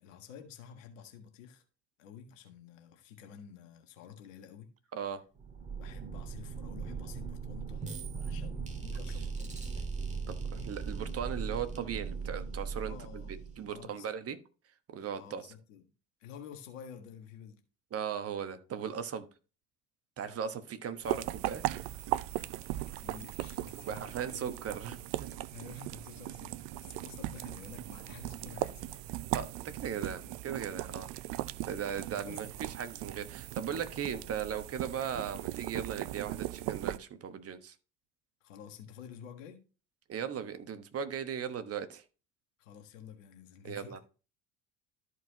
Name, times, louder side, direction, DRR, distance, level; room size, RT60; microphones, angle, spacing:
voice 1, 0.0-1.6 2.0-4.7 5.7-10.0 12.8-13.4 13.7-14.2 15.1-15.8 16.2-17.6 20.8-21.6 22.5-24.5 25.2-29.0 30.0-30.4 32.2-32.4 38.4-39.6 42.6-44.0, left 8 dB, 70° left, 1.6 m, -51 dB
sound 1, 5.3-13.9, right 5 dB, 20° right, 2.1 m, -39 dB
voice 2, 10.3-13.0 13.6-14.4 14.9-15.4 17.9-19.3 20.2-21.6 23.8-25.3 29.3-31.1 31.7-37.7 40.1-42.0 43.6-44.0, right 8 dB, 35° right, 1.2 m, -38 dB
sound 2, 21.0-37.0, right 16 dB, 60° right, 0.5 m, -38 dB
13.0 x 4.7 x 2.9 m
figure-of-eight pair, 60°, 39 cm